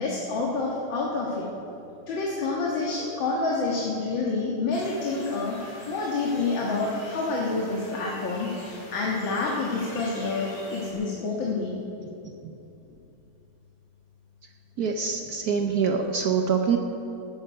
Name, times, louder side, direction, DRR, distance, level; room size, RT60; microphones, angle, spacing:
voice 1, 0.0-1.5 2.1-11.8, left 3 dB, 80° left, -3 dB, 2.3 m, -28 dB
sound 1, 4.7-10.9, left 1 dB, 50° left, 3.2 m, -45 dB
voice 2, 14.8-16.8, right 6 dB, 60° right, 4 dB, 1.3 m, -25 dB
18.5 x 10.5 x 5.7 m, 2.9 s
omnidirectional pair, 2.1 m